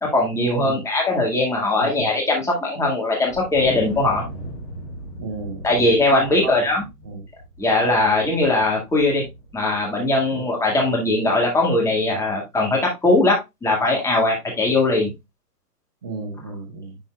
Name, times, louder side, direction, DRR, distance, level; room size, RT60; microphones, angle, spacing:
voice 1, 0.0-4.2 5.6-6.8 7.6-9.2 9.5-15.1, left 2 dB, 5° left, 0 dB, 1.8 m, -20 dB
voice 2, 1.8-2.1 5.2-6.7 7.0-7.3 10.3-10.5 16.0-17.0, right 3 dB, 15° right, 0 dB, 0.5 m, -34 dB
Wind, 3.3-9.8, equal, 35° left, 3.1 m, -38 dB
10.0 x 4.2 x 2.3 m, 0.21 s
hypercardioid pair, 150°, 48 cm